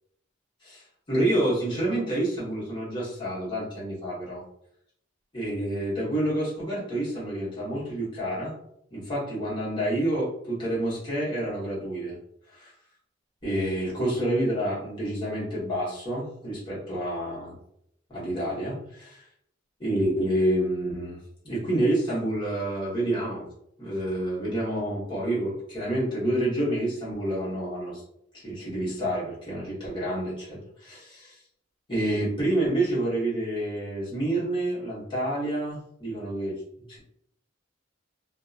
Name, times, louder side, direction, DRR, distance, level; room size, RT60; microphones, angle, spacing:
voice 1, 0.6-4.4 5.3-8.5 8.9-12.2 12.6-12.7 13.4-17.5 18.1-19.2 19.8-21.2 21.4-23.5 23.8-28.0 28.3-31.4 31.9-36.6 36.9-37.0, right 1 dB, 25° left, -7 dB, 1.1 m, -28 dB
2.6 x 2.2 x 2.4 m, 0.73 s
head